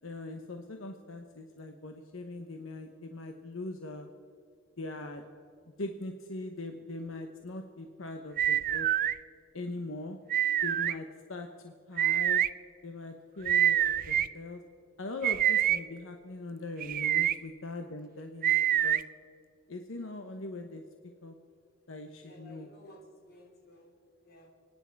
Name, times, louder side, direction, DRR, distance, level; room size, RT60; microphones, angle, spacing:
voice 1, 0.0-4.1 4.8-5.2 5.8-8.9 9.5-10.2 10.6-12.4 12.8-14.6 15.0-19.0 19.7-20.8 21.2-21.3 21.9-22.7, left 2 dB, 80° left, 5 dB, 1.0 m, -41 dB
sound 1, 8.4-9.1 10.3-10.9 12.0-12.5 13.4-14.3 15.2-15.8 16.8-17.3 18.4-19.0, right 11 dB, 45° right, 0.4 m, -26 dB
voice 2, 22.2-23.9 24.2-24.5, equal, 50° left, 0 dB, 3.1 m, -55 dB
29.5 x 10.0 x 4.7 m, 2.4 s
head